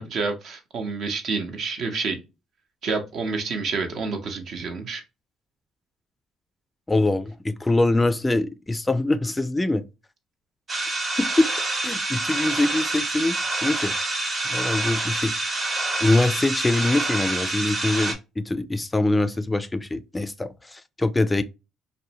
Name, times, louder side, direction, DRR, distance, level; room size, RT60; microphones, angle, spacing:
voice 1, 0.0-2.2 2.8-5.0, right 4 dB, 65° right, 0.7 m, -28 dB
voice 2, 6.9-9.8 11.2-11.5 11.8-13.4 13.6-13.9 14.5-15.4 16.0-21.4, left 2 dB, 15° left, 0.3 m, -23 dB
sound 1, 10.7-18.1, right 2 dB, 35° right, 0.9 m, -27 dB
2.6 x 2.1 x 2.7 m
supercardioid pair, 80°, 0 cm